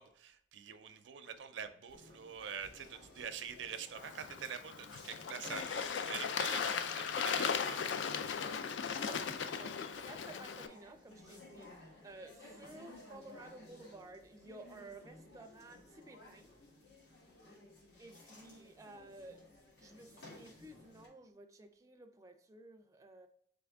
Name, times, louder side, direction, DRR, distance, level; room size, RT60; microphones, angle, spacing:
voice 1, 0.0-8.0, right 7 dB, 90° right, 9 dB, 0.5 m, -45 dB
sound 1, 1.9-21.1, left 2 dB, 65° left, 1.2 m, -57 dB
Bird / Water, 4.0-10.7, left 6 dB, 85° left, 0.4 m, -37 dB
voice 2, 8.8-16.5 18.0-19.4 19.8-23.3, right 2 dB, 20° right, 6 dB, 0.4 m, -54 dB
4.0 x 3.4 x 3.5 m, 0.66 s
head